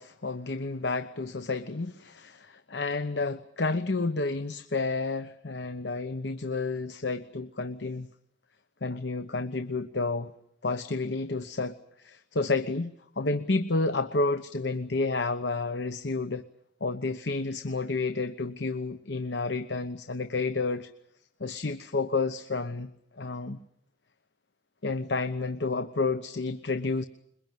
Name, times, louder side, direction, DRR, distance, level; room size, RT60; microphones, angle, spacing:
voice 1, 0.0-8.1 8.8-10.3 10.6-16.4 16.8-20.9 21.4-22.9 23.2-23.6 24.8-27.0, left 3 dB, 90° left, 10 dB, 1.1 m, -30 dB
22.5 x 22.0 x 9.3 m, 0.73 s
head